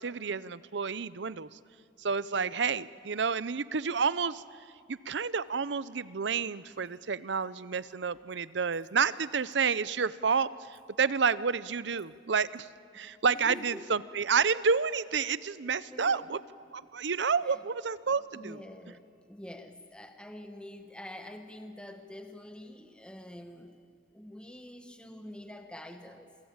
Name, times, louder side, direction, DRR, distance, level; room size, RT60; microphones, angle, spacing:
voice 1, 0.0-1.6 2.0-4.4 4.9-12.7 12.9-16.4 16.7-18.6, right 5 dB, 70° right, 17 dB, 0.7 m, -30 dB
voice 2, 12.9-13.9 15.9-16.4 17.4-17.6 18.1-23.8 24.1-26.3, left 1 dB, 5° left, 6 dB, 1.2 m, -46 dB
27.5 x 23.5 x 8.8 m, 2.3 s
head